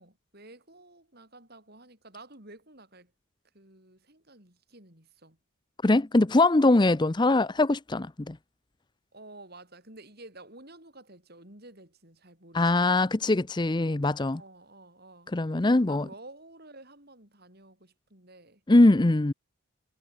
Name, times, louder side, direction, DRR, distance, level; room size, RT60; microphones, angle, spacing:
voice 1, 0.0-3.1 3.5-5.4 9.1-12.8 14.3-15.3 15.9-18.6, right 2 dB, 45° right, 7.8 m, -51 dB
voice 2, 5.8-8.4 12.5-14.4 15.3-16.1 18.7-19.3, left 2 dB, 20° left, 0.6 m, -22 dB
head